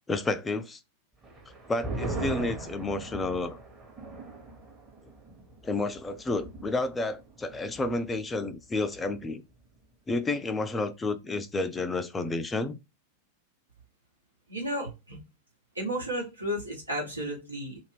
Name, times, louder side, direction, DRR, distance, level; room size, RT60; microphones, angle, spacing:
voice 1, 0.1-0.8 1.7-3.6 5.6-9.4 10.1-12.8, left 2 dB, 15° left, 0.4 m, -30 dB
sound 1, 1.2-8.2 8.5-8.6 8.9-9.4, right 2 dB, 20° right, 0.9 m, -39 dB
voice 2, 14.5-15.2 15.7-17.8, equal, 85° right, 1.3 m, -33 dB
2.5 x 2.3 x 3.4 m
figure-of-eight pair, 90°, 0 cm